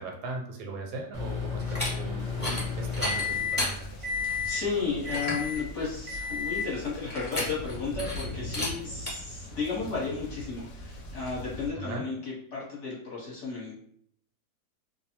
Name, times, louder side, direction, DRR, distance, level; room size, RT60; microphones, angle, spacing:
voice 1, 0.0-3.7 11.7-12.0, right 3 dB, 80° right, 1 dB, 1.2 m, -38 dB
Microwave oven, 1.1-3.7 4.0-4.6 5.0-5.6 6.1-6.7, left 6 dB, 35° right, 0.5 m, -32 dB
sound 1, 1.6-1.9 2.3-2.6 2.9-3.7 4.3-4.4 4.8-4.9 5.1-5.4 7.1-7.7 8.0-8.2 8.5-8.7 9.1-9.2, left 1 dB, 10° left, 0.7 m, -32 dB
sound 2, 2.2-11.7, equal, 70° left, 0.7 m, -42 dB
voice 2, 4.4-13.8, left 4 dB, 55° left, -6 dB, 1.0 m, -33 dB
2.7 x 2.0 x 2.8 m, 0.63 s
omnidirectional pair, 1.7 m